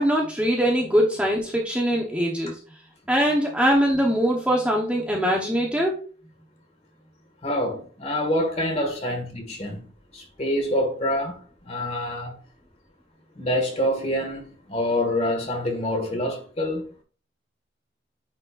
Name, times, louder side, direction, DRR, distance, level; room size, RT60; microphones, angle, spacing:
voice 1, 0.0-2.6 3.1-6.0, equal, 5° right, 0.9 m, -22 dB
voice 2, 7.4-9.9 10.1-12.4 13.3-16.8, left 1 dB, 35° left, 1.7 m, -26 dB
9.0 x 4.2 x 2.4 m
head